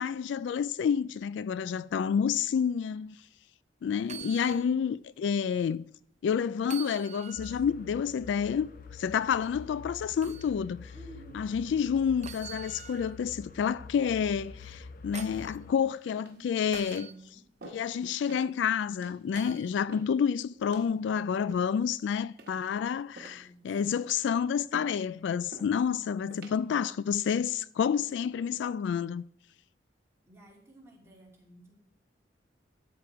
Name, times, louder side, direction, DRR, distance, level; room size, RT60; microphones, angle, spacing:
voice 1, 0.0-3.2 3.8-5.9 6.2-10.9 11.3-17.1 17.7-29.2, left 7 dB, 70° left, 0.3 m, -29 dB
sound 1, 4.0-4.7 5.1-5.2 6.6-7.6 10.2-10.5 12.2-13.2 14.6-15.6 16.7-17.1 19.3-19.7 21.5-21.6, right 9 dB, 40° right, 0.5 m, -45 dB
voice 2, 4.4-4.8 10.9-11.5 16.3-17.4 23.1-23.7 26.4-26.8 30.3-31.8, right 2 dB, 15° right, 2.9 m, -53 dB
sound 2, 7.4-15.7, left 5 dB, 50° left, 0.7 m, -47 dB
sound 3, 16.2-16.5 16.9-17.2 17.6-17.9 18.3-18.5 19.0-19.2 19.9-20.2 20.7-20.9 21.5-21.9 22.4-22.8 23.2-23.5 23.9-24.2 24.7-25.0 25.5-25.8 26.3-26.6 27.2-27.5, right 2 dB, 55° right, 1.5 m, -49 dB
12.5 x 7.8 x 4.7 m
head